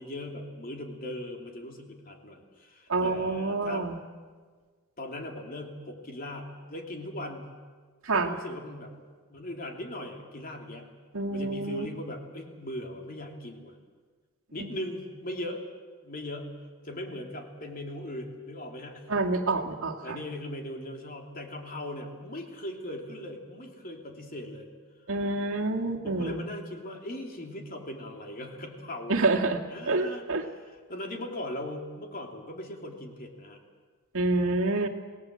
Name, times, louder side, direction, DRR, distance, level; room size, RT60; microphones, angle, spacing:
voice 1, 0.0-3.9 5.0-7.5 8.1-9.0 9.3-10.9 11.3-13.7 14.5-15.6 16.0-19.1 20.0-24.7 26.0-33.6, left 1 dB, 40° left, 2 dB, 3.1 m, -39 dB
voice 2, 2.9-4.0 8.0-8.4 11.1-11.9 14.6-14.7 19.1-20.2 25.1-26.4 29.1-29.6 29.9-30.4 34.1-34.9, right 3 dB, 65° right, 2 dB, 2.0 m, -27 dB
27.5 x 18.5 x 7.6 m, 1.5 s
head